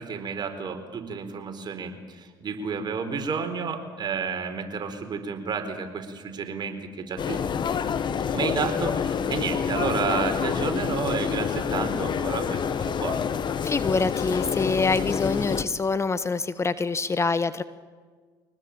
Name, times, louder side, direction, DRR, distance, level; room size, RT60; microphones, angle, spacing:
voice 1, 0.0-7.4 8.2-13.2, right 5 dB, 45° right, 6 dB, 4.2 m, -31 dB
sound 1, 7.2-15.6, left 7 dB, 45° left, 1.5 m, -27 dB
voice 2, 13.6-17.6, left 4 dB, 25° left, 14 dB, 1.1 m, -25 dB
24.5 x 19.5 x 8.8 m, 1.5 s
hypercardioid pair, 65°, 11 cm